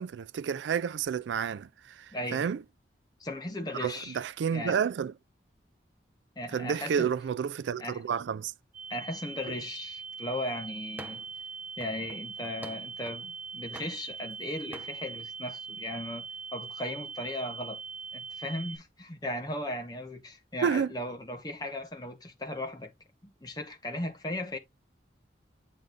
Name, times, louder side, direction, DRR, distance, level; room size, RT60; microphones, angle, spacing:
voice 1, 0.0-2.6 3.7-5.1 6.5-8.5 9.5-9.6 20.6-20.9, right 7 dB, 80° right, 0.3 m, -30 dB
voice 2, 2.1-2.4 3.2-4.2 4.5-4.8 6.4-7.1 7.8-8.0 8.9-11.2 11.8-17.8 18.1-22.9 23.2-24.6, left 1 dB, 20° left, 1.1 m, -37 dB
sound 1, 8.7-18.8, right 5 dB, 45° right, 3.2 m, -41 dB
sound 2, 11.0-11.4 11.8-13.3 13.7-14.4 14.7-15.0, right 1 dB, 10° right, 0.7 m, -47 dB
9.2 x 3.7 x 3.5 m
head